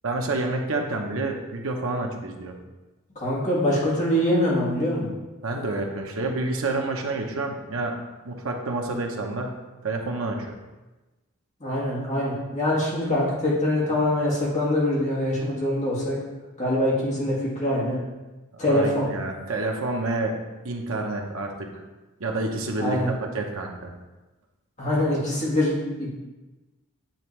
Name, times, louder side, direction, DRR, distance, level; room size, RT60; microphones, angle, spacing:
voice 1, 0.0-2.5 5.4-8.0 8.2-9.5 9.8-10.6 18.6-20.3 20.6-21.7 22.2-23.9, right 2 dB, 70° right, 2 dB, 0.8 m, -28 dB
voice 2, 3.2-5.1 11.6-16.1 16.6-18.0 18.6-19.1 22.8-23.1 24.8-26.1, left 1 dB, 35° left, -6 dB, 1.8 m, -24 dB
8.8 x 3.4 x 3.2 m, 1.1 s
head